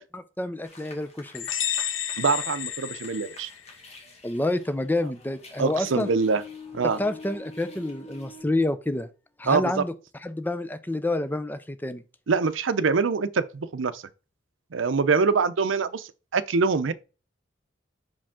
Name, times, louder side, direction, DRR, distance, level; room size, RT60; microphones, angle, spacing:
voice 1, 0.1-1.5 4.2-6.1 6.8-9.1 9.4-9.9 10.2-12.0, left 2 dB, 10° left, 0.5 m, -28 dB
sound 1, 0.6-8.4, left 4 dB, 35° left, 1.6 m, -46 dB
sound 2, 1.3-3.9, left 10 dB, 80° left, 0.6 m, -31 dB
voice 2, 2.2-3.5 5.6-6.4 6.7-7.0 9.5-9.8 12.3-14.0 14.7-16.9, right 4 dB, 85° right, 0.6 m, -24 dB
6.1 x 5.1 x 3.6 m
head